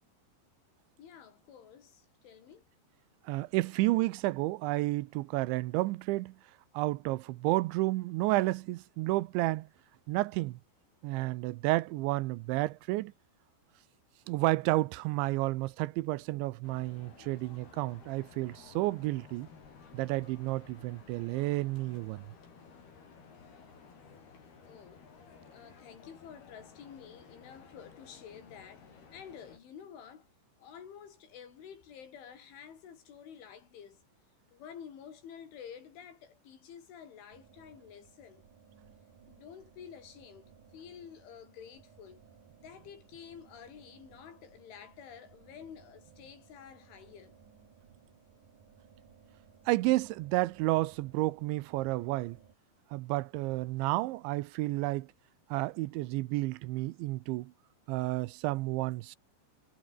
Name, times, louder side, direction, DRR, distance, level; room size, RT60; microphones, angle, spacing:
voice 1, 1.0-2.7 24.6-25.1 25.5-30.3 30.6-34.0 34.5-38.4 39.3-42.2 42.6-47.4, left 8 dB, 85° left, 6.4 m, -50 dB
voice 2, 3.3-6.3 6.7-9.7 10.1-10.6 11.0-13.1 14.3-19.5 19.9-22.2 49.7-52.4 52.9-55.1 55.5-57.5 57.9-59.2, right 19 dB, 85° right, 3.1 m, -31 dB
sound 1, 16.6-29.6, left 5 dB, 55° left, 7.4 m, -55 dB
sound 2, 37.3-52.5, right 7 dB, 45° right, 4.3 m, -60 dB
omnidirectional pair, 5.3 m